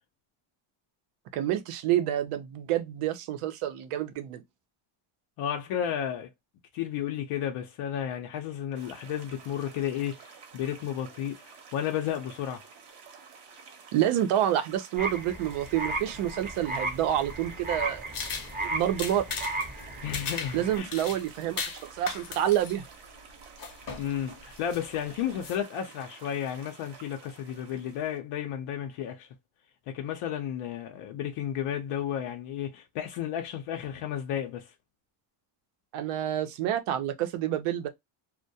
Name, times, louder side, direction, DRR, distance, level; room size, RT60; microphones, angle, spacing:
voice 1, 1.3-4.4 13.9-18.0 18.6-19.3 20.5-22.8 35.9-37.9, right 11 dB, 85° right, 0.6 m, -28 dB
voice 2, 5.4-6.3 6.7-12.6 20.0-20.9 23.9-29.3 29.9-34.7, left 9 dB, 85° left, 0.6 m, -33 dB
sound 1, 8.7-28.2, right 5 dB, 55° right, 0.8 m, -51 dB
sound 2, 15.0-20.8, right 2 dB, 20° right, 0.6 m, -35 dB
sound 3, 15.5-25.6, left 5 dB, 45° left, 0.7 m, -40 dB
2.2 x 2.1 x 2.6 m
cardioid pair, 135°, 50 cm